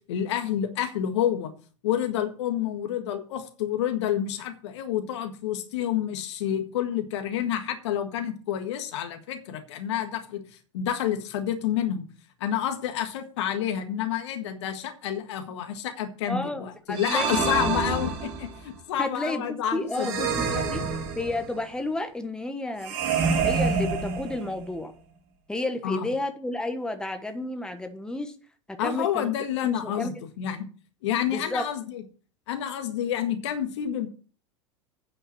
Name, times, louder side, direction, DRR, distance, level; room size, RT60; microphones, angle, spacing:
voice 1, 0.1-1.5 1.8-10.4 10.7-12.0 12.4-20.9 25.8-26.1 28.8-30.7 31.0-32.0 32.5-34.1, left 10 dB, 60° left, 7 dB, 1.6 m, -29 dB
voice 2, 16.3-17.5 19.0-20.8 21.2-22.9 23.4-24.9 25.5-28.3 28.7-29.3 29.6-30.1 31.3-31.7, left 2 dB, 5° left, 7 dB, 1.3 m, -31 dB
sound 1, 16.9-18.6 19.9-21.6 22.8-24.7, right 5 dB, 55° right, 2.4 m, -27 dB
9.2 x 5.5 x 7.5 m, 0.39 s
figure-of-eight pair, 80°, 16 cm